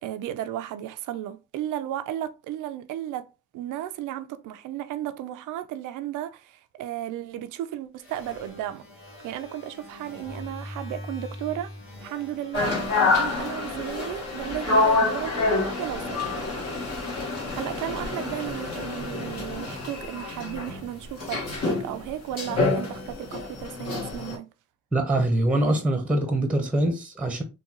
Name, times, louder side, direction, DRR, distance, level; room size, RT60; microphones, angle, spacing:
voice 1, 0.0-3.3 3.5-8.9 9.2-16.3 17.2-24.5, right 12 dB, 85° right, 0.5 m, -34 dB
sound 1, 8.0-17.4, left 1 dB, 45° left, 1.7 m, -44 dB
sound 2, 12.5-24.4, left 3 dB, 60° left, 1.4 m, -27 dB
voice 2, 24.9-27.4, right 1 dB, 5° right, 0.7 m, -24 dB
3.7 x 2.2 x 2.9 m
cardioid pair, 90°, 30 cm